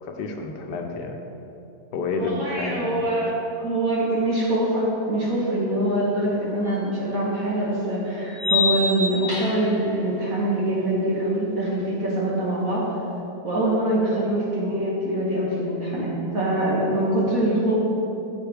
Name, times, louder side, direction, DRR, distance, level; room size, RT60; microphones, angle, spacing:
voice 1, 0.0-1.2 1.9-3.1, left 3 dB, 75° left, 3 dB, 1.3 m, -29 dB
voice 2, 2.2-12.9 13.4-17.8, right 1 dB, 55° right, -5 dB, 1.7 m, -24 dB
sound 1, 6.7-6.8 8.3-9.8, left 4 dB, 15° right, 0.8 m, -25 dB
9.0 x 7.9 x 3.4 m, 3.0 s
omnidirectional pair, 1.9 m